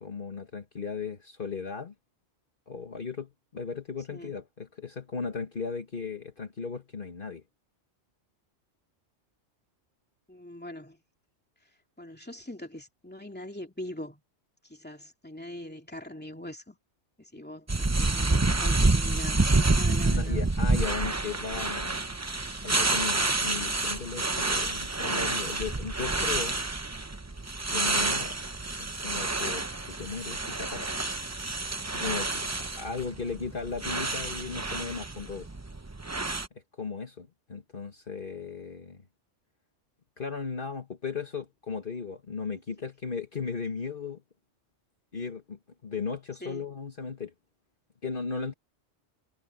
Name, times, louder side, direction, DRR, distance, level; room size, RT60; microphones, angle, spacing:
voice 1, 0.0-1.9 2.7-7.4 20.1-22.0 22.6-26.6 27.7-28.4 28.8-31.0 31.9-35.5 36.7-39.0 40.2-44.2 45.1-47.3 48.0-48.5, left 5 dB, 50° left, 1.6 m, -36 dB
voice 2, 10.3-11.0 12.0-14.2 14.7-16.8 17.2-20.5 33.2-33.4 46.4-46.7, left 1 dB, 10° left, 2.6 m, -42 dB
sound 1, 17.7-36.5, right 2 dB, 15° right, 0.6 m, -28 dB
omnidirectional pair, 1.2 m